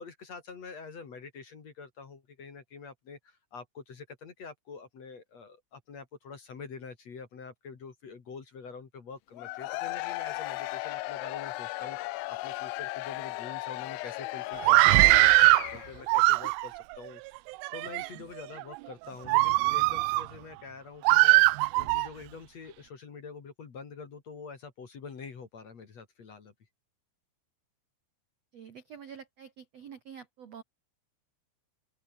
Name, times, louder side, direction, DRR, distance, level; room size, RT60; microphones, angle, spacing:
voice 1, 0.0-15.3 15.7-17.2 17.7-26.5, left 5 dB, 40° left, 3.1 m, -46 dB
Cheering / Crowd, 9.3-16.1, left 19 dB, 80° left, 3.0 m, -36 dB
Screaming, 14.6-15.7 16.1-16.8 17.5-18.1 18.6-18.8 19.3-20.3 21.0-22.1, right 24 dB, 85° right, 3.0 m, -21 dB
voice 2, 28.5-30.6, right 7 dB, 65° right, 1.6 m, -47 dB
open air
omnidirectional pair, 5.6 m